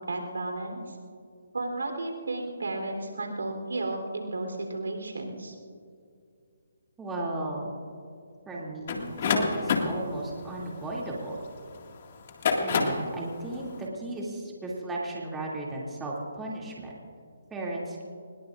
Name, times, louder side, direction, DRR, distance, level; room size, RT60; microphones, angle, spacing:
voice 1, 0.1-1.0 1.5-5.5, right 2 dB, 85° right, 3 dB, 3.6 m, -33 dB
voice 2, 7.0-7.7 8.5-11.4 12.6-16.9 17.5-18.0, right 2 dB, 10° right, -4 dB, 2.7 m, -35 dB
sound 1, 8.9-11.6 12.2-13.1, left 5 dB, 45° left, 2.0 m, -27 dB
24.5 x 21.0 x 2.6 m, 2.3 s
hypercardioid pair, 155°, 0 cm